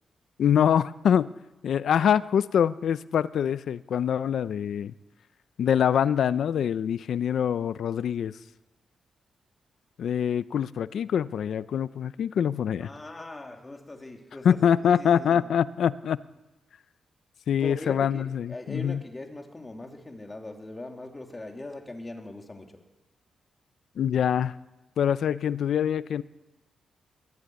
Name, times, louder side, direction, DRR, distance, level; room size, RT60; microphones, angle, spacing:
voice 1, 0.4-1.3 1.6-4.9 5.6-8.3 10.0-12.9 14.4-16.2 17.5-19.0 24.0-24.5 25.0-26.2, left 8 dB, 75° left, 0.7 m, -24 dB
voice 2, 12.8-15.5 17.6-22.9, left 2 dB, 20° left, 3.2 m, -41 dB
21.5 x 15.5 x 9.6 m
cardioid pair, 105°, 0 cm